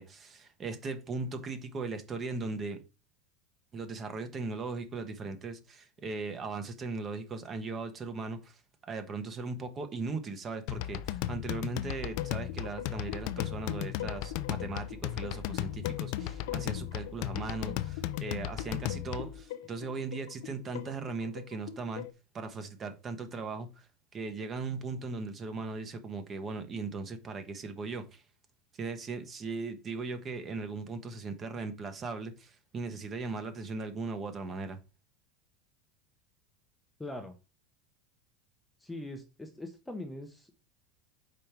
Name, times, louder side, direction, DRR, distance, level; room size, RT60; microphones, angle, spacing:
voice 1, 0.0-2.8 3.7-8.6 8.9-22.0 22.3-23.9 24.1-28.2 28.8-34.8, right 3 dB, 20° right, 9 dB, 0.9 m, -38 dB
sound 1, 10.7-19.4, left 14 dB, 50° left, 0.4 m, -36 dB
sound 2, 12.0-22.1, left 11 dB, 85° left, 0.7 m, -44 dB
voice 2, 37.0-37.4 38.8-40.5, left 1 dB, 5° left, 5 dB, 0.7 m, -41 dB
5.1 x 4.5 x 5.7 m, 0.30 s
supercardioid pair, 170°, 0 cm